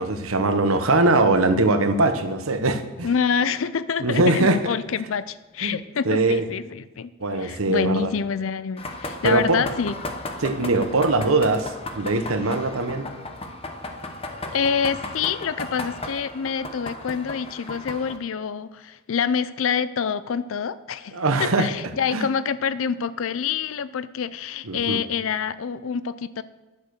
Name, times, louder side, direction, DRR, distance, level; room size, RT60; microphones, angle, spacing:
voice 1, 0.0-3.1 4.0-4.6 5.6-5.8 6.0-6.5 7.2-8.1 9.2-9.6 10.4-13.1 21.1-21.7 22.1-22.3 24.6-25.0, right 2 dB, 70° right, 8 dB, 1.0 m, -21 dB
voice 2, 3.0-7.1 7.4-10.0 14.5-26.4, left 6 dB, 65° left, 16 dB, 0.4 m, -26 dB
sound 1, 8.8-18.2, left 2 dB, 25° left, 0.8 m, -35 dB
10.5 x 6.7 x 6.5 m, 1.2 s
head